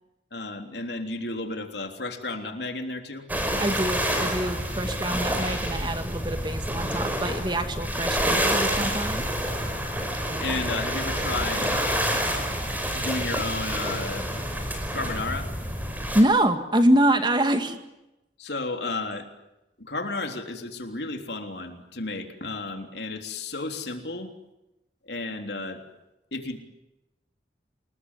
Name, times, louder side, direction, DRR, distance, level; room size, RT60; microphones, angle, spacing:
voice 1, 0.3-3.2 10.4-12.1 12.9-14.2 14.9-15.5 18.4-19.3 19.9-24.3 25.1-25.8 26.3-26.6, left 3 dB, 70° left, 5 dB, 3.5 m, -32 dB
sound 1, 3.3-16.2, equal, 10° right, 5.0 m, -28 dB
voice 2, 3.6-9.2 16.1-17.8, right 1 dB, 25° right, 8 dB, 2.1 m, -25 dB
29.0 x 20.5 x 9.9 m, 0.95 s
head